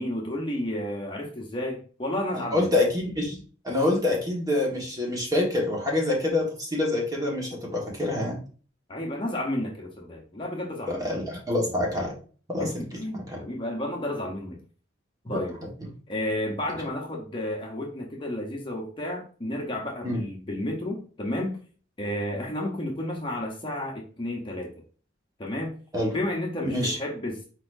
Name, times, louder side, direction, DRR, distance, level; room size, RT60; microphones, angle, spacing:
voice 1, 0.0-2.7 8.9-11.1 12.6-14.6 15.2-15.6 16.1-21.6 22.0-24.7 25.4-25.8 26.1-27.5, left 1 dB, 25° left, 0 dB, 0.8 m, -32 dB
voice 2, 2.3-8.4 11.0-12.1 12.5-12.8 13.3-13.4 15.3-15.4 15.8-15.9 20.0-20.2 25.9-26.1 26.6-27.0, left 2 dB, 20° right, -2 dB, 1.5 m, -26 dB
4.8 x 4.1 x 2.6 m, 0.40 s
head